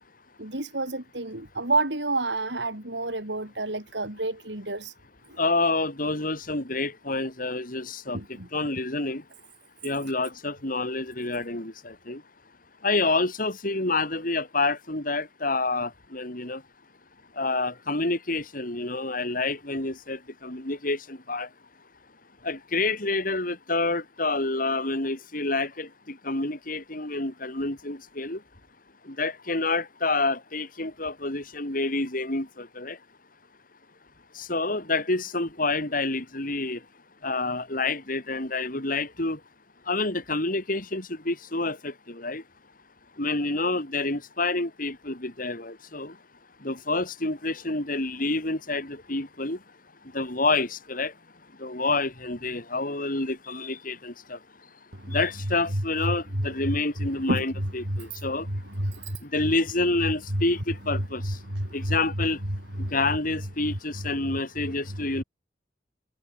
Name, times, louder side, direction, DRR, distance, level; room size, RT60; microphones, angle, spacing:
voice 1, 0.4-4.9 8.1-8.5 56.3-56.5 57.3-58.0 58.5-59.2 60.3-60.4 61.5-62.0 62.8-62.9, right 2 dB, 90° right, 7.4 m, -29 dB
voice 2, 5.4-8.2 8.5-9.2 9.8-12.2 12.8-16.6 17.4-21.5 22.4-28.4 29.1-33.0 34.3-36.8 37.2-39.4 39.9-42.4 43.2-46.1 46.6-49.6 50.1-51.1 51.6-54.4 55.1-58.5 59.2-61.4 61.7-62.4 62.8-65.2, left 3 dB, 50° left, 4.8 m, -28 dB
head